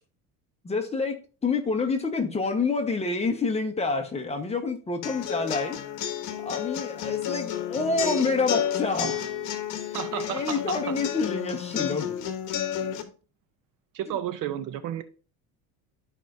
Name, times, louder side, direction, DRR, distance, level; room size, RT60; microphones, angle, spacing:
voice 1, 0.6-5.8 6.4-9.2 9.9-12.2, left 4 dB, 15° left, 4 dB, 1.2 m, -28 dB
sound 1, 5.0-13.0, left 9 dB, 55° left, 1.2 m, -31 dB
voice 2, 9.9-11.0 13.9-15.0, right 11 dB, 55° right, 12 dB, 0.7 m, -32 dB
12.5 x 5.0 x 2.7 m, 0.37 s
cardioid pair, 130°, 38 cm